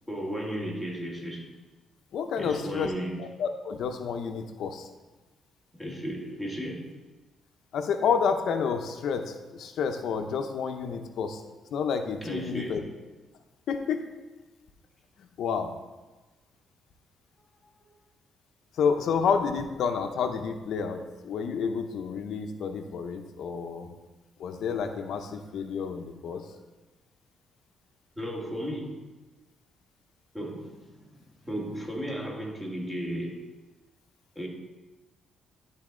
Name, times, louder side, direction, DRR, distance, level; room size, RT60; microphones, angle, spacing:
voice 1, 0.1-1.5 2.4-3.1 5.7-6.9 12.2-12.9 28.2-28.9 30.3-31.2 31.4-33.4 34.4-34.5, equal, 5° right, -2 dB, 2.0 m, -34 dB
voice 2, 2.1-2.9 3.2-4.9 7.7-11.4 11.7-12.8 13.7-14.0 15.2-15.7 18.7-23.9 24.4-26.5, left 6 dB, 70° left, 6 dB, 0.7 m, -29 dB
11.5 x 4.1 x 3.7 m, 1.2 s
cardioid pair, 90°, 0 cm